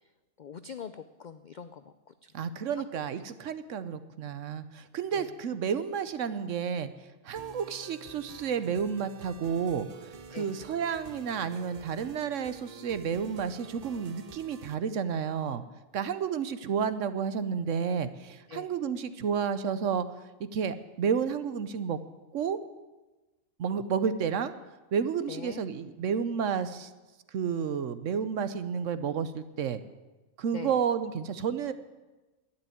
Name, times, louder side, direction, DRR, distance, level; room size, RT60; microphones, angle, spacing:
voice 1, 0.4-1.9 2.8-2.9 5.1-5.3 10.3-10.5 18.5-18.7 25.3-25.6 30.5-30.8, left 7 dB, 65° left, 11 dB, 0.4 m, -42 dB
voice 2, 2.3-6.9 7.2-15.6 15.9-22.0 22.3-22.6 23.6-24.5 24.9-26.9 27.3-29.8 30.4-31.7, right 7 dB, 70° right, 12 dB, 1.1 m, -31 dB
sound 1, 7.4-14.7, right 6 dB, 40° right, 0.6 m, -48 dB
11.5 x 9.9 x 9.2 m, 1.2 s
omnidirectional pair, 1.4 m